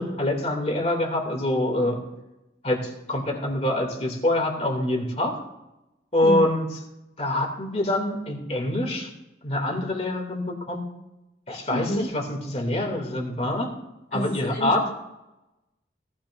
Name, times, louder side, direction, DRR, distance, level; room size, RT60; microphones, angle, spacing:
voice 1, 0.0-2.0 2.6-5.3 6.1-6.8 7.2-9.1 9.4-10.8 11.5-13.7 14.1-14.8, left 1 dB, 35° left, 3 dB, 2.3 m, -25 dB
voice 2, 11.7-12.1 14.1-14.7, left 1 dB, 50° left, 0 dB, 1.0 m, -28 dB
18.0 x 12.5 x 2.5 m, 0.94 s
head